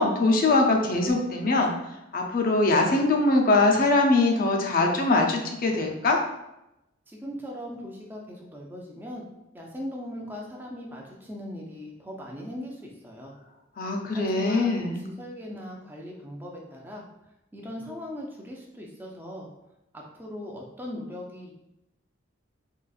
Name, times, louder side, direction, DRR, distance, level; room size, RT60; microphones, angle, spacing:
voice 1, 0.0-1.7 2.1-6.2 13.8-15.0, left 2 dB, 45° left, 1 dB, 0.5 m, -22 dB
voice 2, 7.1-9.3 9.5-13.3 14.1-17.0 17.5-19.5 19.9-21.5, left 1 dB, 10° right, -1 dB, 0.4 m, -39 dB
3.8 x 2.5 x 2.4 m, 0.89 s
head